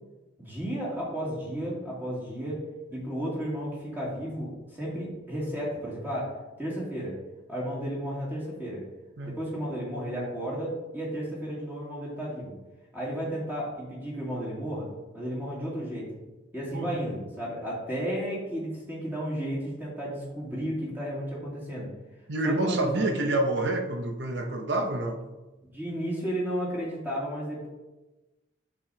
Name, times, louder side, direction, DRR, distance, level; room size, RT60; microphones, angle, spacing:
voice 1, 0.4-2.6 2.9-6.3 6.6-7.2 7.5-8.8 9.3-12.5 12.9-14.9 15.1-16.2 16.5-21.9 22.4-23.3 25.7-27.7, equal, 10° right, -7 dB, 2.4 m, -33 dB
voice 2, 22.3-25.2, right 2 dB, 60° right, 5 dB, 0.7 m, -28 dB
8.6 x 6.9 x 2.8 m, 1.1 s
head